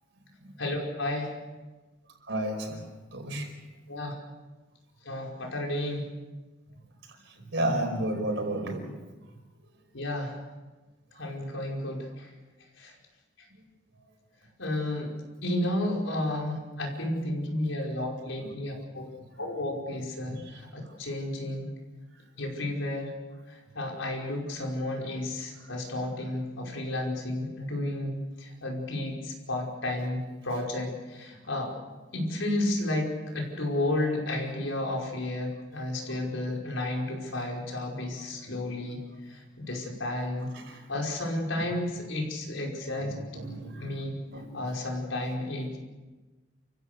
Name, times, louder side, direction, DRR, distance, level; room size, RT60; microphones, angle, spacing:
voice 1, 0.6-1.4 3.9-4.2 5.0-6.1 9.9-10.4 11.2-12.3 12.8-12.9 14.6-15.1 15.4-19.1 19.4-21.7 22.4-23.1 23.5-31.7 32.1-40.5 40.9-43.1 43.8-44.2 44.5-45.8, left 1 dB, 80° left, 0 dB, 5.3 m, -32 dB
voice 2, 2.3-2.8 3.1-3.5 7.5-8.9 20.3-20.4 43.0-43.8 44.3-44.5, right 1 dB, 65° right, 3 dB, 5.0 m, -31 dB
30.0 x 16.0 x 6.8 m, 1.2 s
head